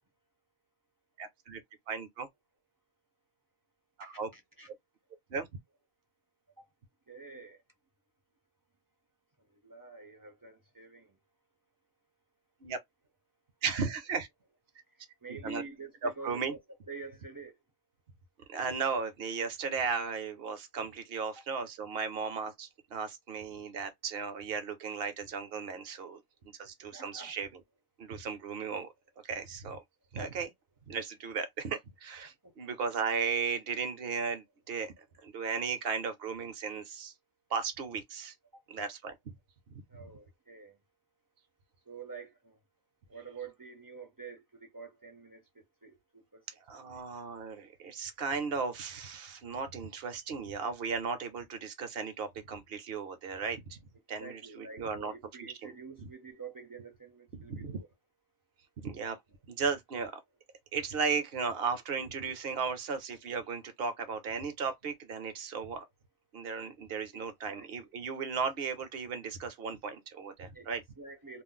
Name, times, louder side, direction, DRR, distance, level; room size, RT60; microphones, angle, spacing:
voice 1, 1.2-1.6 1.9-2.3 4.0-4.3 5.3-5.5 12.6-12.8 13.6-14.3 15.3-15.6 16.0-16.5 18.5-27.6 28.0-28.9 29.2-29.8 30.1-30.5 30.9-37.1 37.5-38.3 38.7-39.3 46.6-53.8 54.1-55.7 56.0-56.1 57.3-57.8 58.8-59.2 59.5-60.2 60.7-65.8 66.3-70.8, right 5 dB, 60° right, 0.9 m, -36 dB
voice 2, 7.1-7.6 9.6-11.1 15.2-16.6 16.9-17.5 21.4-21.5 26.9-27.3 38.5-38.6 39.9-40.7 41.9-42.3 43.1-44.4 44.7-45.4 45.8-45.9 46.3-46.4 46.7-47.0 54.2-57.9 67.1-67.2 67.5-67.7 70.5-70.7 71.0-71.4, right 4 dB, 25° right, 0.5 m, -47 dB
2.5 x 2.0 x 3.7 m
omnidirectional pair, 1.2 m